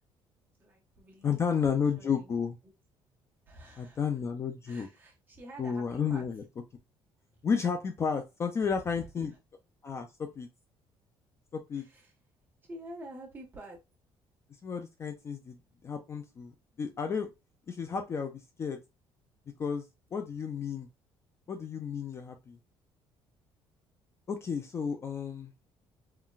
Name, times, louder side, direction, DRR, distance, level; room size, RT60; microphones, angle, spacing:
voice 1, 0.6-2.3 3.5-4.1 4.6-6.3 7.3-7.5 8.6-9.1 11.7-12.1 12.6-13.8, right 1 dB, 20° right, 1.3 m, -49 dB
voice 2, 1.2-2.6 3.8-4.9 5.6-6.4 7.4-9.3 9.8-10.5 11.5-11.8 14.6-15.6 15.8-16.5 16.8-17.3 17.7-18.8 19.6-19.9 20.1-20.9 21.5-22.6 24.3-25.5, left 6 dB, 30° left, 0.3 m, -32 dB
3.8 x 2.2 x 2.3 m
cardioid pair, 145°, 9 cm